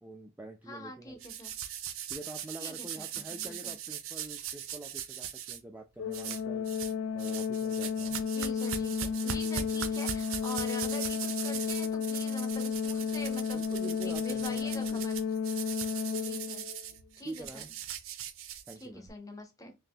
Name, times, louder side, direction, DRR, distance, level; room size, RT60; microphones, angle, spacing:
voice 1, 0.0-1.2 2.1-6.7 7.1-8.2 13.5-15.0 17.2-17.7 18.7-19.1, right 2 dB, 10° right, 0.4 m, -46 dB
voice 2, 0.7-1.6 2.6-3.8 8.2-15.2 16.1-16.7 17.2-17.6 18.8-19.8, left 1 dB, 15° left, 0.8 m, -45 dB
sound 1, 1.2-5.6 6.1-6.9 7.2-19.1, right 9 dB, 85° right, 0.5 m, -40 dB
Organ, 6.0-16.9, left 6 dB, 85° left, 0.4 m, -33 dB
3.0 x 2.7 x 3.8 m
head